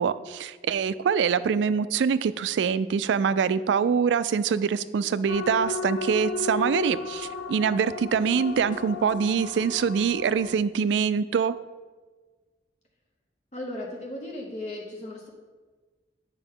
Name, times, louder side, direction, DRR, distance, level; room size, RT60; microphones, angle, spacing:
voice 1, 0.0-11.6, right 6 dB, 80° right, 16 dB, 0.3 m, -24 dB
sound 1, 5.3-10.6, left 4 dB, 90° left, 0.5 m, -34 dB
voice 2, 13.5-15.3, left 1 dB, 40° left, -1 dB, 0.8 m, -36 dB
8.9 x 5.3 x 3.7 m, 1.4 s
head